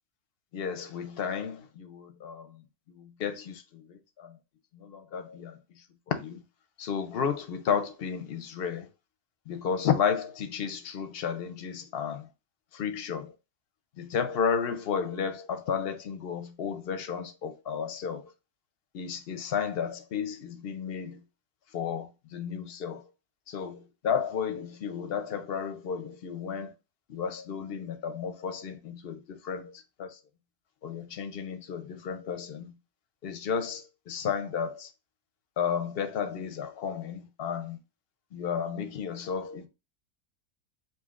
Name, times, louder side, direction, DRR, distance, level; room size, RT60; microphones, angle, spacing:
voice 1, 0.5-2.5 3.0-3.6 3.9-4.3 4.8-5.6 6.1-6.4 6.8-8.9 9.5-12.3 12.7-13.3 14.0-18.2 18.9-21.2 21.7-23.0 23.5-26.7 27.1-29.7 30.0-30.1 30.8-32.7 33.2-34.9 35.6-37.8 38.3-39.7, left 7 dB, 60° left, 0.6 m, -32 dB
6.9 x 2.7 x 2.4 m
omnidirectional pair, 1.5 m